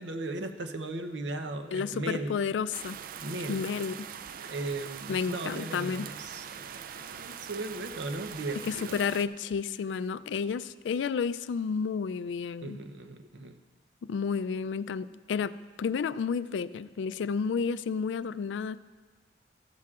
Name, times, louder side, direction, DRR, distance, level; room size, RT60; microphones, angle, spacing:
voice 1, 0.0-2.3 3.1-3.6 4.4-9.0 12.6-13.6, right 2 dB, 80° right, 7 dB, 0.7 m, -37 dB
voice 2, 1.7-3.0 3.5-3.9 5.1-6.1 8.6-12.8 14.0-18.8, left 6 dB, 85° left, 15 dB, 0.3 m, -31 dB
sound 1, 2.7-9.3, right 8 dB, 50° right, 0.3 m, -42 dB
14.5 x 12.0 x 2.4 m, 1.4 s
head